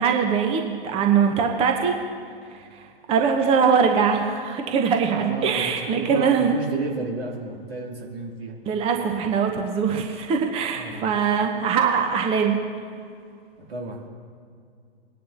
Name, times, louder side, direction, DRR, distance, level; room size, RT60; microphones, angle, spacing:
voice 1, 0.0-1.9 3.1-6.5 8.7-12.6, right 6 dB, 20° right, 4 dB, 0.8 m, -22 dB
voice 2, 5.1-8.6 10.7-11.2 13.6-14.1, right 3 dB, 70° right, -1 dB, 2.4 m, -32 dB
21.0 x 10.0 x 2.6 m, 2.3 s
figure-of-eight pair, 115°, 31 cm